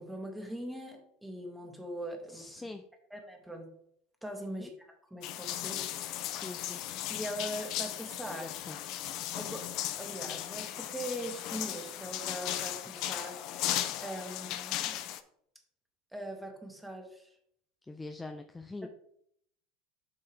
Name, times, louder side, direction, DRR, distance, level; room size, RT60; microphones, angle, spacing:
voice 1, 0.0-2.5 3.1-3.7 4.2-4.7 5.1-6.1 7.1-8.5 9.4-9.7 10.0-13.7 14.0-15.0 16.1-17.3 18.8-18.9, right 1 dB, 5° right, 3 dB, 1.9 m, -41 dB
voice 2, 2.3-2.8 4.5-4.7 5.7-6.8 8.3-8.8 17.9-18.9, left 2 dB, 15° left, 6 dB, 0.6 m, -44 dB
sound 1, 5.2-15.2, left 12 dB, 55° left, 0.6 m, -36 dB
7.7 x 5.5 x 3.4 m, 0.68 s
hypercardioid pair, 80°, 0 cm